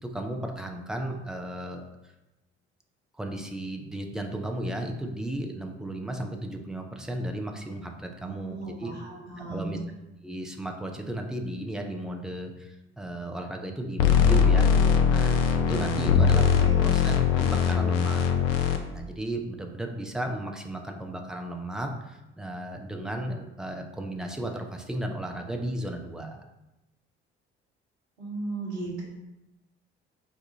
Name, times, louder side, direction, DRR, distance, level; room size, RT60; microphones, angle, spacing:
voice 1, 0.0-1.8 3.2-8.9 9.5-9.8 10.2-26.4, right 1 dB, ahead, 3 dB, 0.3 m, -35 dB
voice 2, 8.2-9.8 16.5-16.8 28.2-29.0, right 3 dB, 80° right, -3 dB, 0.9 m, -36 dB
sound 1, 14.0-18.8, left 7 dB, 65° left, 0.5 m, -21 dB
4.6 x 2.3 x 2.7 m, 0.97 s
figure-of-eight pair, 50°, 33 cm